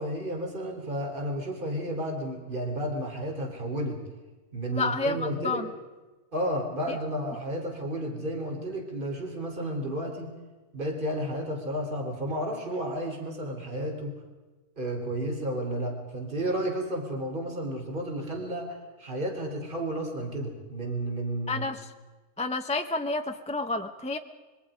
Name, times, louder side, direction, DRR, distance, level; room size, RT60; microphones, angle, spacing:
voice 1, 0.0-4.0 4.5-5.6 6.3-10.3 10.7-14.1 14.8-21.6, right 1 dB, 30° right, 2 dB, 3.9 m, -32 dB
voice 2, 4.7-5.7 6.9-7.0 21.5-21.9 22.4-24.2, left 3 dB, 5° left, 6 dB, 0.7 m, -30 dB
25.5 x 22.5 x 5.1 m, 1.2 s
omnidirectional pair, 1.7 m